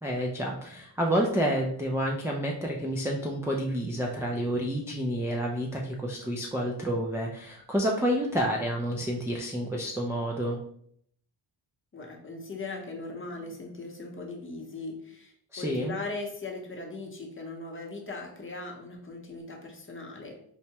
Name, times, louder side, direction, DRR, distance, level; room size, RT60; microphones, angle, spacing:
voice 1, 0.0-10.6 15.5-15.9, equal, 5° right, -2 dB, 0.3 m, -29 dB
voice 2, 11.9-20.4, left 3 dB, 30° left, 1 dB, 0.7 m, -39 dB
4.5 x 2.1 x 2.8 m, 0.66 s
wide cardioid pair, 100°, 44 cm